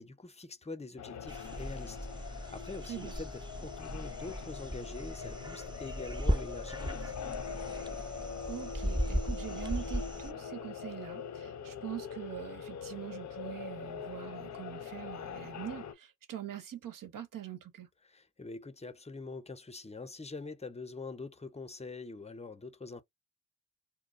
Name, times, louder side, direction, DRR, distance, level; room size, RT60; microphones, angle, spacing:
voice 1, 0.0-7.3 18.1-23.0, left 3 dB, 20° left, 0.7 m, -45 dB
sound 1, 1.0-15.9, left 7 dB, 55° left, 0.6 m, -43 dB
sound 2, 1.3-10.3, equal, 15° right, 0.8 m, -37 dB
voice 2, 8.5-17.9, right 11 dB, 70° right, 1.0 m, -43 dB
2.2 x 2.1 x 3.8 m
supercardioid pair, 50°, 34 cm